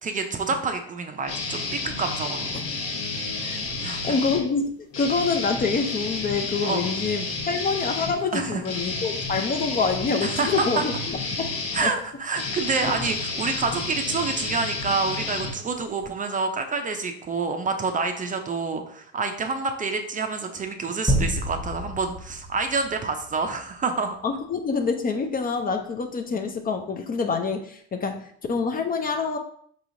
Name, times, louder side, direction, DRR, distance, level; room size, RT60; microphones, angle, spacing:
voice 1, 0.0-2.5 3.8-4.2 6.6-6.9 8.3-8.6 10.2-10.8 11.7-24.2, right 4 dB, 25° right, 6 dB, 0.5 m, -28 dB
sound 1, 1.3-4.4 4.9-16.1, left 3 dB, 50° left, 1.4 m, -31 dB
voice 2, 3.4-11.5 11.8-11.9 12.8-12.9 24.2-29.4, left 4 dB, 30° left, 6 dB, 0.4 m, -26 dB
sound 2, 21.1-23.6, equal, ahead, 0.9 m, -28 dB
4.7 x 3.0 x 2.6 m, 0.62 s
supercardioid pair, 85°, 32 cm